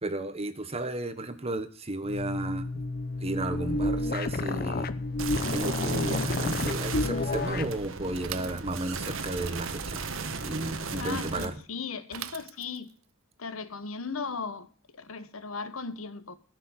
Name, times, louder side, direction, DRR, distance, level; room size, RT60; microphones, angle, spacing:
voice 1, 0.0-2.7 3.2-4.9 5.5-10.0 10.4-11.6, right 2 dB, 30° right, 1.2 m, -33 dB
sound 1, 2.0-7.8, left 2 dB, 50° left, 0.8 m, -30 dB
sound 2, 5.2-11.4, right 4 dB, 70° right, 1.3 m, -36 dB
Bicycle / Mechanisms, 8.2-9.2 12.1-13.0, right 11 dB, 90° right, 0.6 m, -41 dB
voice 2, 11.0-12.9 13.4-14.7 14.9-16.4, left 4 dB, 85° left, 1.2 m, -37 dB
14.0 x 6.7 x 7.9 m
head